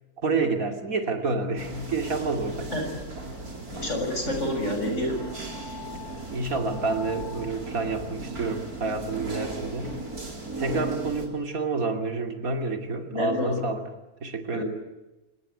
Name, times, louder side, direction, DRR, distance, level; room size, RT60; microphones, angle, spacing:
voice 1, 0.2-2.7 6.3-10.0 10.6-13.8 14.2-14.6, right 3 dB, 70° right, 5 dB, 3.1 m, -28 dB
sound 1, 1.6-11.3, right 2 dB, 90° right, 4.9 m, -36 dB
voice 2, 3.7-5.2 13.1-13.6 14.5-14.6, left 1 dB, 50° left, 3 dB, 7.0 m, -28 dB
27.5 x 18.5 x 9.4 m, 1.0 s
omnidirectional pair, 1.5 m